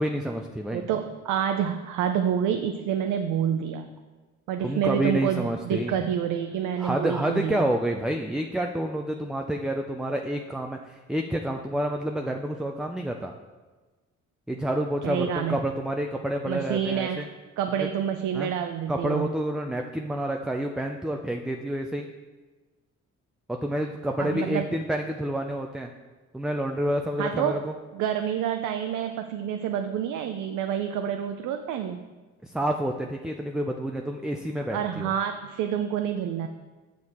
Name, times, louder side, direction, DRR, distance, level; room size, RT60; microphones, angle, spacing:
voice 1, 0.0-0.9 4.6-6.0 6.8-13.3 14.5-17.3 18.3-18.5 18.9-22.1 23.5-25.9 26.3-27.7 32.4-35.1, right 1 dB, ahead, 3 dB, 0.4 m, -29 dB
voice 2, 0.7-3.9 4.5-7.7 15.0-15.6 16.5-17.2 17.6-19.3 24.2-24.7 27.2-27.6 27.9-32.0 34.7-36.5, right 9 dB, 85° right, 6 dB, 0.5 m, -28 dB
7.1 x 6.3 x 4.3 m, 1.3 s
cardioid pair, 90°, 30 cm